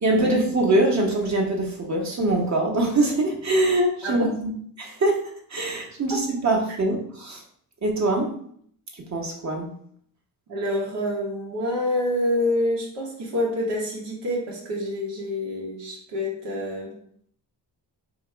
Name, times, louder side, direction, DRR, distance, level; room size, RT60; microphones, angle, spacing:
voice 1, 0.0-4.5 4.8-5.2 5.5-7.4 7.8-8.3 9.1-9.7, right 2 dB, 40° right, 1 dB, 1.0 m, -23 dB
voice 2, 10.5-17.0, left 1 dB, 90° right, -3 dB, 1.1 m, -27 dB
2.9 x 2.8 x 4.5 m, 0.62 s
cardioid pair, 100°, 42 cm